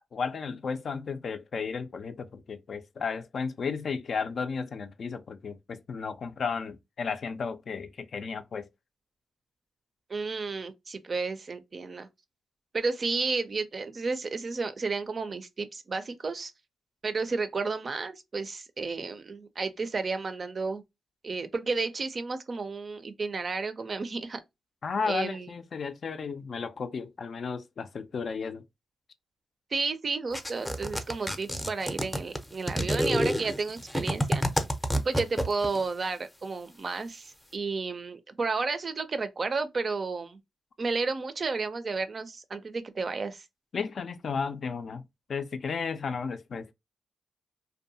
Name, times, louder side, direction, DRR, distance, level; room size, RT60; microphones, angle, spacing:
voice 1, 0.1-8.7 24.8-28.6 43.7-45.0 45.3-46.7, left 5 dB, 60° left, 0.4 m, -34 dB
voice 2, 10.1-12.1 12.7-16.5 17.0-20.8 21.2-24.4 25.1-25.5 29.7-34.4 35.0-40.4 40.8-43.4, right 4 dB, 45° right, 0.4 m, -32 dB
sound 1, 30.3-35.8, equal, 10° left, 0.5 m, -28 dB
2.7 x 2.2 x 2.6 m
cardioid pair, 80°, 0 cm